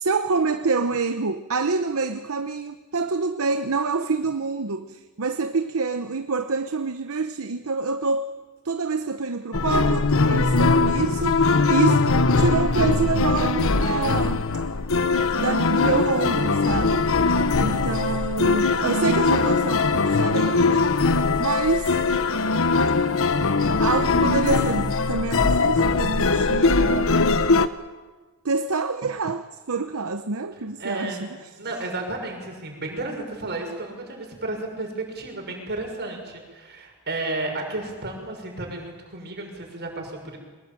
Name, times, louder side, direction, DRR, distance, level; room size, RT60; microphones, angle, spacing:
voice 1, 0.0-8.3 8.6-12.0 12.4-14.4 15.4-17.1 17.6-20.9 21.4-22.0 23.8-27.2 28.4-31.3, right 4 dB, 70° right, 9 dB, 0.9 m, -26 dB
sound 1, 9.5-27.7, left 3 dB, 65° left, 1.0 m, -21 dB
voice 2, 17.3-18.1 30.8-40.4, right 2 dB, 50° right, 2 dB, 6.4 m, -33 dB
23.5 x 20.5 x 9.0 m, 1.3 s
head